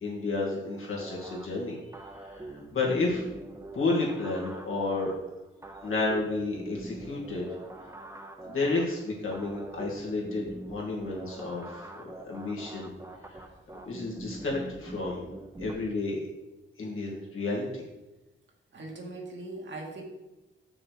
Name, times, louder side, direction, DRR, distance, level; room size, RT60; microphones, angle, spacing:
voice 1, 0.0-1.8 2.2-3.2 3.7-5.1 5.8-7.5 8.4-12.9 13.3-13.4 13.9-15.2 15.6-16.2 16.8-17.8, left 3 dB, 75° left, -3 dB, 2.4 m, -31 dB
sound 1, 1.0-15.7, right 2 dB, 15° right, 0.9 m, -44 dB
voice 2, 18.7-20.0, right 2 dB, 60° right, 0 dB, 1.9 m, -40 dB
6.8 x 6.3 x 4.7 m, 1.0 s
cardioid pair, 90°, 21 cm